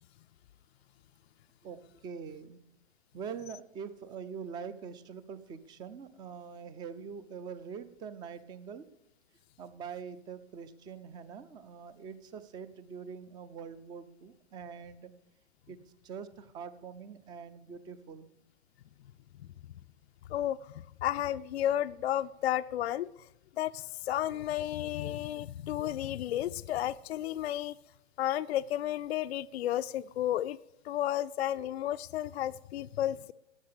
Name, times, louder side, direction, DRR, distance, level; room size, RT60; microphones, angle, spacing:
voice 1, 1.6-2.6 3.1-8.9 9.6-15.1 15.7-18.3, right 6 dB, 10° right, 15 dB, 0.4 m, -44 dB
voice 2, 20.3-20.7 21.0-23.1 23.6-27.7 28.2-30.6 30.9-33.3, left 12 dB, 65° left, 10 dB, 0.5 m, -32 dB
12.5 x 8.6 x 6.7 m, 0.90 s
hypercardioid pair, 130°, 35 cm